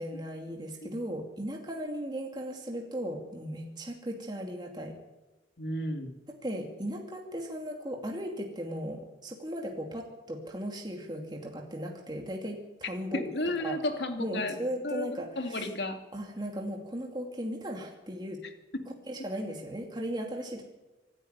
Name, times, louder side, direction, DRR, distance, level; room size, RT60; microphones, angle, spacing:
voice 1, 0.0-5.0 6.4-13.2 13.6-13.8 14.2-15.7 16.1-18.4 19.1-20.6, equal, 25° right, 1 dB, 2.5 m, -37 dB
voice 2, 5.6-6.1 13.1-16.0 18.7-18.8, left 1 dB, 70° left, 5 dB, 2.4 m, -33 dB
26.0 x 11.0 x 9.4 m, 1.1 s
head